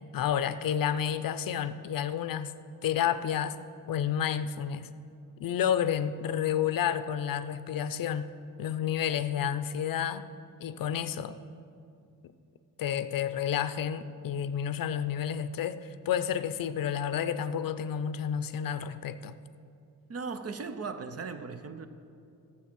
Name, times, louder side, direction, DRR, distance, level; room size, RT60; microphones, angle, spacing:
voice 1, 0.1-2.5 2.8-3.6 3.9-4.9 5.4-8.3 8.6-10.2 10.6-11.4 12.8-19.4, left 9 dB, 65° left, 13 dB, 0.5 m, -30 dB
voice 2, 20.1-21.9, right 4 dB, 40° right, 9 dB, 0.7 m, -37 dB
14.0 x 7.3 x 6.2 m, 2.6 s
wide cardioid pair, 145°, 36 cm